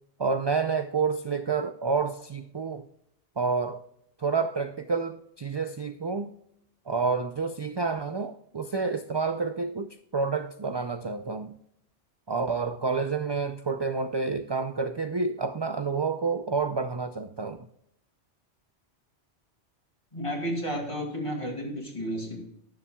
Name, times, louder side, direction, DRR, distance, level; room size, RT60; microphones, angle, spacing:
voice 1, 0.2-2.9 3.4-3.8 4.2-6.3 6.9-11.5 12.3-17.6, right 4 dB, 40° right, 0.3 m, -29 dB
voice 2, 20.1-22.4, equal, 30° left, 2.4 m, -32 dB
18.5 x 7.2 x 2.3 m
omnidirectional pair, 1.2 m